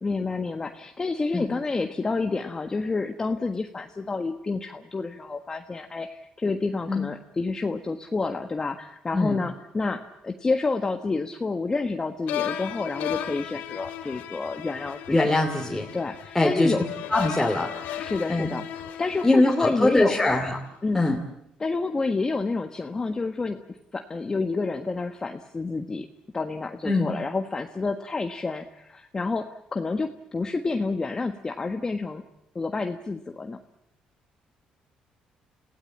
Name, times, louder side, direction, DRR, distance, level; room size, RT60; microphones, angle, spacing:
voice 1, 0.0-15.2 15.9-16.9 17.5-17.6 18.0-18.6 19.0-20.2 20.8-21.2 21.6-26.1 26.3-32.2 32.5-33.6, left 3 dB, 25° left, 5 dB, 1.4 m, -29 dB
sound 1, 12.3-20.5, left 10 dB, 90° left, 2.2 m, -36 dB
voice 2, 15.1-15.9 16.3-16.7 17.1-18.5 19.2-20.6 20.9-21.2 26.8-27.1, left 2 dB, 5° left, 0 dB, 2.8 m, -22 dB
27.5 x 16.5 x 8.6 m, 0.78 s
cardioid pair, 95°, 3 cm